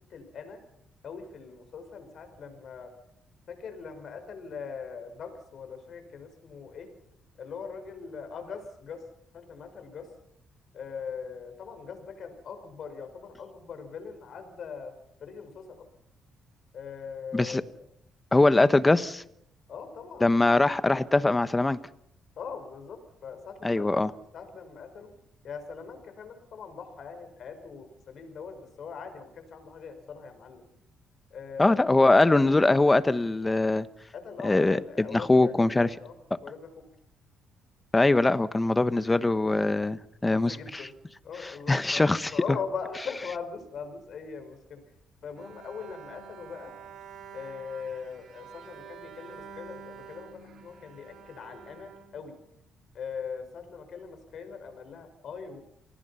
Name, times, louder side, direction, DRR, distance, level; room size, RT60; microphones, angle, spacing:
voice 1, 0.1-0.6 1.0-2.9 3.5-6.9 7.4-9.0 9.3-10.1 10.7-14.9 15.2-15.9 16.7-17.8 19.7-20.5 22.4-25.1 25.4-30.6 31.3-32.1 34.1-36.1 36.4-36.7 40.3-40.9 41.2-42.1 42.3-44.8 45.2-46.7 47.3-52.4 52.9-55.6, left 6 dB, 60° left, 8 dB, 5.6 m, -41 dB
voice 2, 18.3-19.2 20.2-21.8 23.6-24.1 31.6-33.9 34.4-35.9 37.9-40.9 41.4-42.3, left 2 dB, 20° left, 14 dB, 1.1 m, -22 dB
Bowed string instrument, 45.4-52.7, right 7 dB, 70° right, 4.2 m, -48 dB
28.0 x 19.0 x 5.7 m, 0.76 s
cardioid pair, 90°, 0 cm